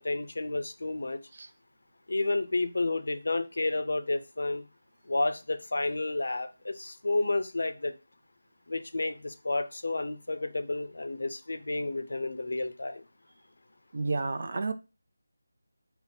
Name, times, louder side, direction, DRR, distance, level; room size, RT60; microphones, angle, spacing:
voice 1, 0.0-1.2 2.1-4.7 5.1-7.9 8.7-13.0, left 2 dB, 70° left, 0.5 m, -31 dB
voice 2, 13.9-14.7, right 3 dB, 50° right, 0.4 m, -31 dB
4.2 x 2.0 x 3.9 m
figure-of-eight pair, 170°, 0 cm